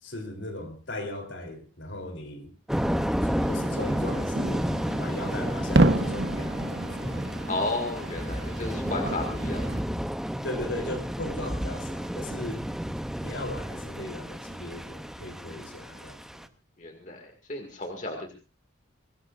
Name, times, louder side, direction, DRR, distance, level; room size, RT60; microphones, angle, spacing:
voice 1, 0.0-2.5 3.2-4.6 5.0-7.1 10.4-12.6 13.2-16.5, left 1 dB, 65° left, 4 dB, 3.4 m, -38 dB
Thunder / Rain, 2.7-16.5, equal, ahead, 0.7 m, -31 dB
sound 1, 3.4-9.8, right 2 dB, 55° right, 1.1 m, -30 dB
voice 2, 7.5-9.8 15.5-16.1 16.8-18.3, left 2 dB, 40° left, 3 dB, 2.2 m, -33 dB
23.0 x 18.0 x 2.5 m, 0.32 s
head